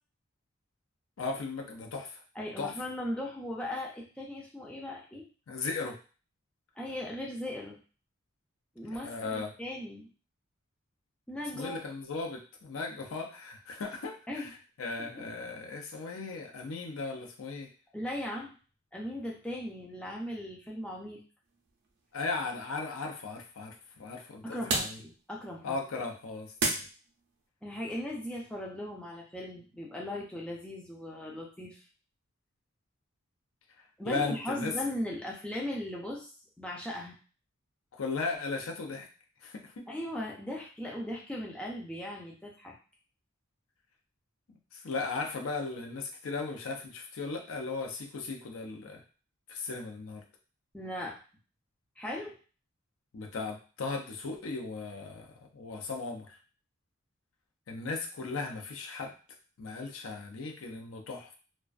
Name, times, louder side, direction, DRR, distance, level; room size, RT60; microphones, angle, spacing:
voice 1, 1.2-2.2 2.6-2.7 5.5-6.0 8.9-9.5 11.5-14.5 14.8-17.7 22.1-25.0 25.6-26.9 34.1-34.7 37.9-39.1 39.4-39.8 44.5-49.0 49.5-50.2 53.1-56.4 57.7-59.1 59.6-61.4, left 4 dB, 75° left, 2 dB, 0.5 m, -37 dB
voice 2, 2.4-5.2 6.8-7.8 8.8-10.1 11.3-11.8 14.3-14.5 15.0-15.3 17.9-18.5 18.9-21.2 24.4-25.8 27.6-31.8 34.0-36.3 36.6-37.2 39.9-42.7 50.7-51.2 52.0-52.3, left 1 dB, 5° left, -3 dB, 0.4 m, -38 dB
sound 1, 21.4-27.5, right 3 dB, 55° right, 0.5 m, -38 dB
2.3 x 2.2 x 2.3 m, 0.37 s
head